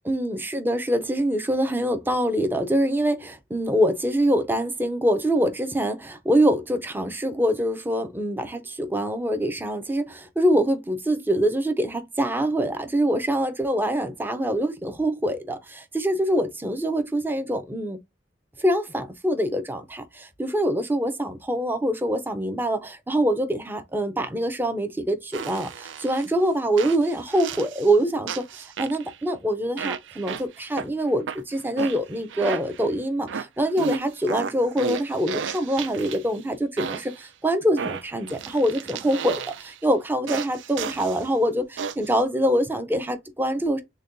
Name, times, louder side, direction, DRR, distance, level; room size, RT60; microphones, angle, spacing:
voice 1, 0.1-18.0 18.6-43.8, right 1 dB, 10° right, 0.5 m, -24 dB
sound 1, 25.3-26.3 26.8-27.9 28.3-29.2 29.8-30.9 31.3-32.9 33.3-36.4 36.8-37.3 37.8-39.8 40.3-41.3 41.8-42.2, right 6 dB, 90° right, 0.4 m, -33 dB
6.4 x 2.2 x 2.4 m
head